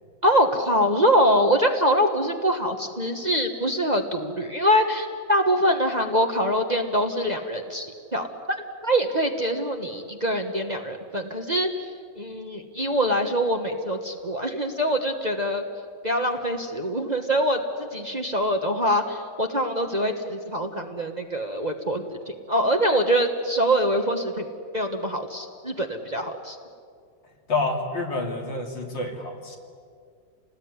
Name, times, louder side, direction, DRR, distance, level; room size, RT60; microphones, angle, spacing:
voice 1, 0.2-8.3 8.8-11.7 12.2-15.6 16.0-24.5 24.7-26.6, equal, 25° right, 3 dB, 1.4 m, -24 dB
voice 2, 27.5-29.6, left 3 dB, 75° left, 1 dB, 3.6 m, -28 dB
28.5 x 19.5 x 9.8 m, 2.2 s
omnidirectional pair, 2.1 m